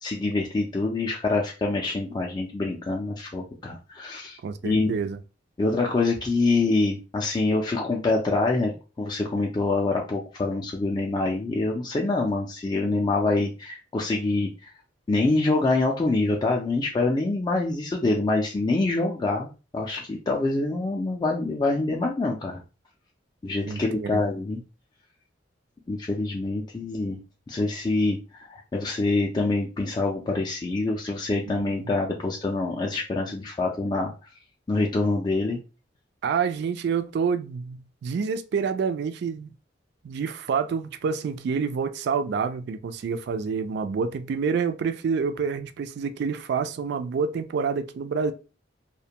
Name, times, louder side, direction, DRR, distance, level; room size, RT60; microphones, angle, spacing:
voice 1, 0.0-4.9 5.6-14.7 15.1-19.5 19.7-22.6 23.4-24.6 25.9-27.2 27.5-34.1 34.7-35.6, left 2 dB, 25° left, 0.3 m, -25 dB
voice 2, 4.4-5.2 23.7-24.2 31.6-31.9 36.2-39.5 40.0-48.3, right 5 dB, 65° right, 0.3 m, -28 dB
2.5 x 2.1 x 2.8 m
head